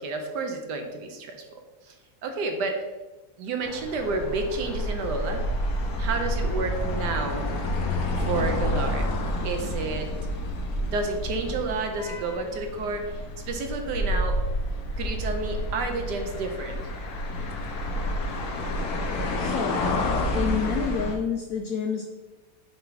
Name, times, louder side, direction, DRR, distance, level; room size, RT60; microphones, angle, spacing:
voice 1, 0.0-1.4 2.2-2.8 3.4-5.4 6.0-7.5 8.2-9.1 9.4-10.1 10.8-13.0 13.5-14.4 15.0-16.8, right 3 dB, 65° right, 4 dB, 1.3 m, -30 dB
sound 1, 3.6-21.1, left 1 dB, 60° left, 1.3 m, -29 dB
voice 2, 19.4-19.8 20.3-22.0, left 7 dB, 85° left, 4 dB, 0.7 m, -28 dB
6.9 x 4.5 x 3.9 m, 1.1 s
omnidirectional pair, 2.1 m